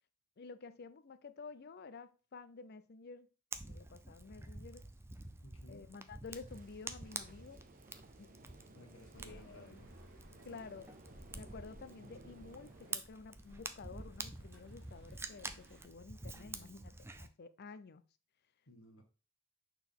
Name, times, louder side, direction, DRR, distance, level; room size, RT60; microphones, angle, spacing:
voice 1, 0.4-3.3 3.7-4.9 5.7-7.6 8.2-8.3 9.2-9.8 10.5-10.9 11.3-18.0, left 4 dB, 50° left, 0.5 m, -51 dB
Fire, 3.5-17.3, right 3 dB, 10° right, 0.5 m, -48 dB
voice 2, 5.4-5.9 8.7-9.9 16.3-16.9 18.7-19.0, equal, 75° left, 1.4 m, -57 dB
sound 1, 6.5-13.0, right 2 dB, 40° right, 0.7 m, -59 dB
sound 2, 9.1-15.8, equal, 60° right, 2.4 m, -59 dB
6.0 x 4.5 x 3.6 m
head